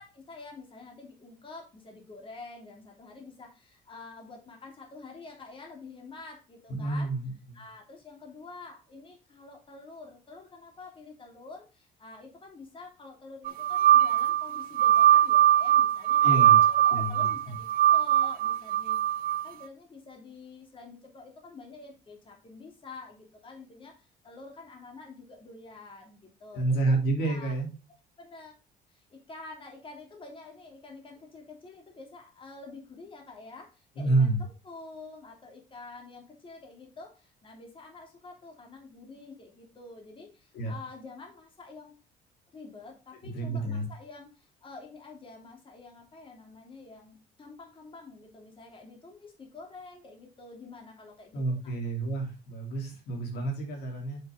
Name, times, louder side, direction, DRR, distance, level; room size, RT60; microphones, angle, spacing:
voice 1, 0.0-7.1 7.5-27.0 27.2-27.6 28.2-28.5 28.9-41.9 42.5-51.7, left 3 dB, 30° left, 1 dB, 3.0 m, -48 dB
voice 2, 6.7-7.3 16.2-16.6 16.9-17.3 26.5-27.7 34.0-34.4 40.5-40.7 43.3-43.9 51.3-54.2, right 2 dB, 70° left, 1 dB, 3.3 m, -29 dB
sound 1, 13.5-19.4, right 11 dB, 60° right, 0.4 m, -21 dB
7.0 x 6.7 x 3.7 m, 0.32 s
cardioid pair, 110°, 17 cm